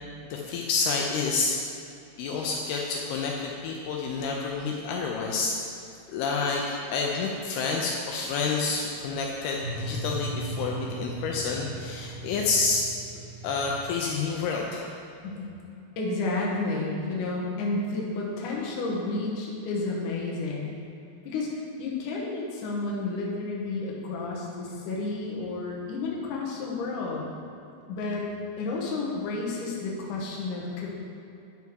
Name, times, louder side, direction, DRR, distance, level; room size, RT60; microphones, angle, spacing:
voice 1, 0.2-1.6 2.2-5.6 6.1-12.8 13.2-14.9, left 4 dB, 80° left, -1 dB, 2.5 m, -29 dB
sound 1, 8.7-13.9, right 1 dB, 40° right, 0.6 m, -37 dB
voice 2, 16.0-20.7 21.2-21.5 21.8-27.3 27.9-28.3 28.6-30.9, left 3 dB, 65° left, -3 dB, 2.4 m, -31 dB
9.2 x 5.5 x 4.6 m, 2.7 s
omnidirectional pair, 4.6 m